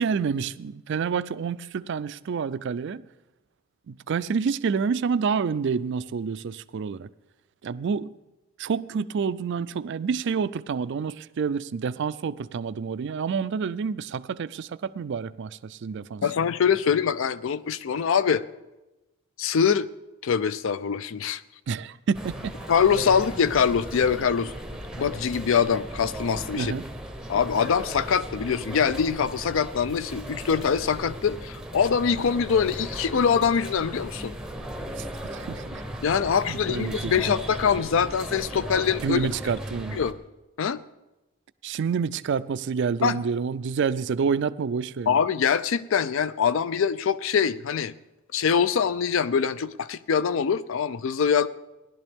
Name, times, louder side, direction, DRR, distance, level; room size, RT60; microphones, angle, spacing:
voice 1, 0.0-3.1 3.9-7.1 7.6-8.1 8.6-16.2 21.7-22.5 26.6-26.9 35.0-35.1 35.3-35.8 36.5-37.4 39.0-40.0 41.6-45.2, right 6 dB, 55° right, 0.4 m, -28 dB
voice 2, 16.2-18.4 19.4-19.9 20.2-21.4 22.7-24.5 25.0-26.7 27.3-34.3 36.0-39.2 39.9-40.1 40.6-40.8 43.0-43.2 45.1-47.9 48.3-51.5, left 7 dB, 60° left, 0.4 m, -24 dB
sound 1, 22.1-40.1, right 1 dB, 5° right, 0.7 m, -37 dB
17.0 x 11.5 x 3.5 m
head